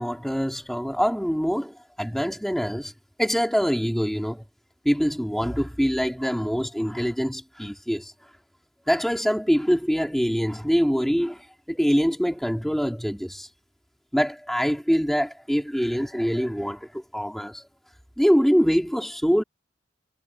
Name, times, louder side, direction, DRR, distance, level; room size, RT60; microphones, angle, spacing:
voice 1, 0.0-2.9 3.2-4.4 4.8-8.1 8.9-13.5 14.1-17.6 18.2-19.4, equal, ahead, 3.8 m, -24 dB
head